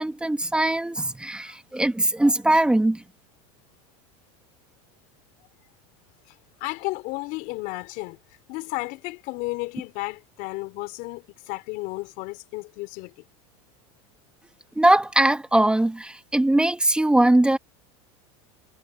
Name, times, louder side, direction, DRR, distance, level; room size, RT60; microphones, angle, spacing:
voice 1, 0.0-3.0 14.8-17.6, right 1 dB, 5° right, 2.0 m, -21 dB
voice 2, 6.6-8.2 8.5-13.1, left 23 dB, 60° left, 4.0 m, -33 dB
supercardioid pair, 135°, 17 cm